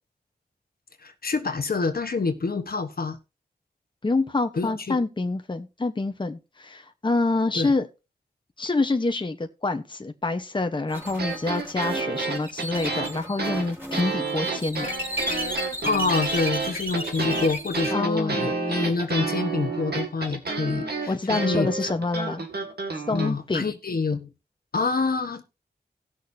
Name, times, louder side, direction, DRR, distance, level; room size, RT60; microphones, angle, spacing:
voice 1, 1.0-3.2 4.5-5.0 7.5-7.7 15.8-21.7 23.1-24.3 24.7-25.4, left 4 dB, 65° left, 1.2 m, -27 dB
voice 2, 4.0-7.9 8.6-14.9 17.9-18.5 21.1-22.4 23.1-23.7, left 3 dB, 30° left, 1.0 m, -27 dB
sound 1, 10.9-17.9, equal, 10° right, 3.6 m, -34 dB
sound 2, 11.1-23.3, right 3 dB, 80° right, 2.1 m, -30 dB
18.0 x 6.5 x 2.7 m
wide cardioid pair, 90°, 16 cm